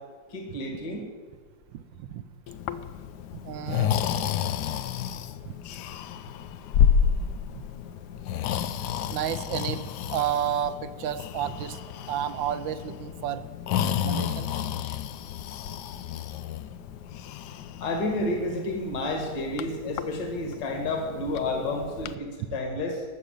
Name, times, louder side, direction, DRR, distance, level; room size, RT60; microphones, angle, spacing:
voice 1, 0.3-1.0 17.8-23.0, left 2 dB, 50° left, 2 dB, 2.3 m, -30 dB
voice 2, 1.7-2.2 3.3-4.0 5.4-5.5 7.5-7.7 9.1-11.8 12.1-13.5 13.8-14.5, right 10 dB, 75° right, 13 dB, 1.2 m, -31 dB
Breathing, 2.5-22.2, left 8 dB, 90° left, 0.9 m, -31 dB
13.0 x 6.7 x 9.0 m, 1.5 s
omnidirectional pair, 2.4 m